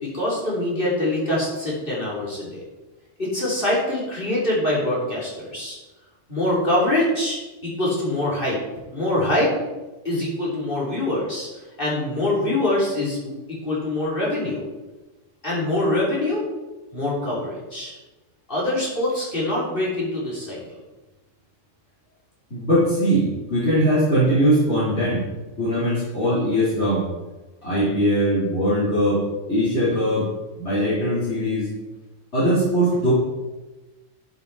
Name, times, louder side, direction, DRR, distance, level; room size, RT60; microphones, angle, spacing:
voice 1, 0.0-2.6 3.2-5.8 6.3-8.6 8.9-9.5 10.0-13.3 13.6-14.6 15.4-16.4 16.9-18.0 18.5-20.6, left 1 dB, 45° left, -6 dB, 3.5 m, -24 dB
voice 2, 22.5-25.2 25.6-27.0 27.6-30.3 30.6-31.7 32.3-33.1, equal, 60° left, -11 dB, 3.8 m, -21 dB
13.0 x 6.8 x 4.1 m, 1.1 s
omnidirectional pair, 1.3 m